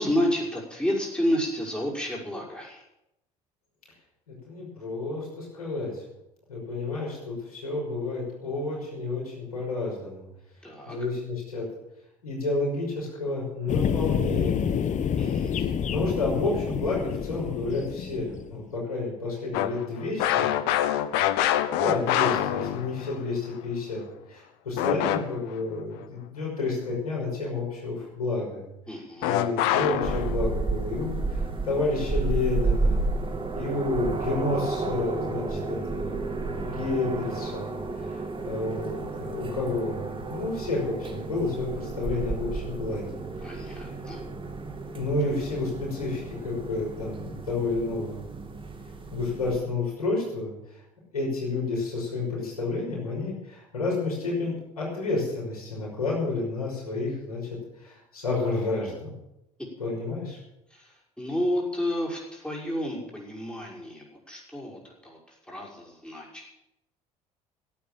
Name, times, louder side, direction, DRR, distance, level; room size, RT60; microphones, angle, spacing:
voice 1, 0.0-2.8 10.6-11.0 15.2-15.5 28.9-29.4 43.4-44.2 60.7-66.5, equal, 5° left, -4 dB, 5.9 m, -31 dB
voice 2, 4.3-6.0 6.5-10.2 10.9-11.7 12.2-14.8 15.5-15.6 15.9-20.5 21.7-24.0 24.3-28.7 29.2-33.0 33.5-36.2 36.6-37.7 38.1-43.9 44.9-48.3 49.1-50.8 51.1-57.4 57.8-59.1 59.8-60.4, left 3 dB, 85° left, -3 dB, 5.7 m, -30 dB
sound 1, 13.7-18.6, left 8 dB, 40° left, 1.1 m, -28 dB
sound 2, 19.5-23.2 24.8-25.5 29.2-30.4, left 12 dB, 65° left, 1.1 m, -25 dB
Air Tone London With Helicopter, 30.0-49.6, right 3 dB, 25° right, 2.3 m, -32 dB
15.5 x 8.5 x 7.5 m, 0.87 s
hypercardioid pair, 60°, 19 cm